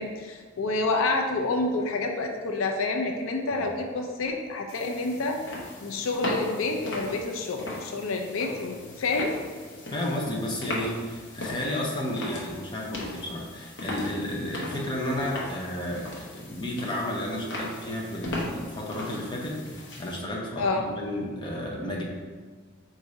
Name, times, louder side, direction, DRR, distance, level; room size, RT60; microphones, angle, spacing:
voice 1, 0.0-5.4 5.8-9.3 20.6-20.8, left 3 dB, 80° left, 2 dB, 0.5 m, -28 dB
sound 1, 4.7-20.2, left 1 dB, 60° left, 0.9 m, -38 dB
voice 2, 9.9-22.0, left 1 dB, 20° left, -2 dB, 0.6 m, -32 dB
4.7 x 2.7 x 4.0 m, 1.5 s
head